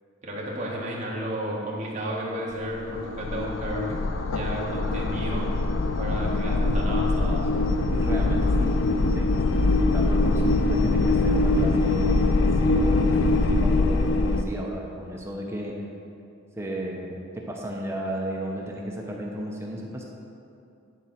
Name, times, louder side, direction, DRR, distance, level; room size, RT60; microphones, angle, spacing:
voice 1, 0.2-3.9 4.3-5.5 6.0-7.5, right 1 dB, 35° right, -4 dB, 1.5 m, -32 dB
sound 1, 2.5-14.4, left 2 dB, 70° left, 0.5 m, -23 dB
voice 2, 7.9-8.8 9.1-15.7 16.6-20.0, right 1 dB, 15° right, -1 dB, 0.7 m, -34 dB
10.0 x 4.3 x 5.7 m, 2.6 s
head